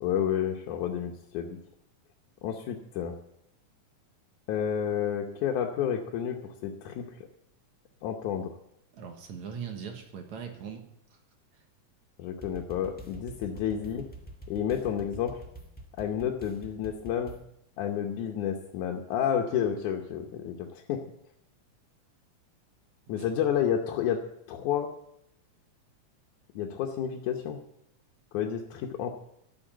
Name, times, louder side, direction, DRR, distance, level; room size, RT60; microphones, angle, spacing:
voice 1, 0.0-1.6 2.4-3.1 4.5-7.1 8.0-8.5 12.2-14.1 14.5-15.4 16.0-17.4 17.8-21.0 23.1-24.2 24.5-24.9 26.6-27.6 28.3-29.1, left 9 dB, 85° left, 1 dB, 2.4 m, -30 dB
voice 2, 8.9-10.8 11.5-11.6 23.2-23.3, right 7 dB, 70° right, 4 dB, 2.7 m, -40 dB
sound 1, 12.4-17.4, right 1 dB, 10° left, 0.6 m, -46 dB
13.0 x 7.0 x 9.0 m, 0.77 s
omnidirectional pair, 3.4 m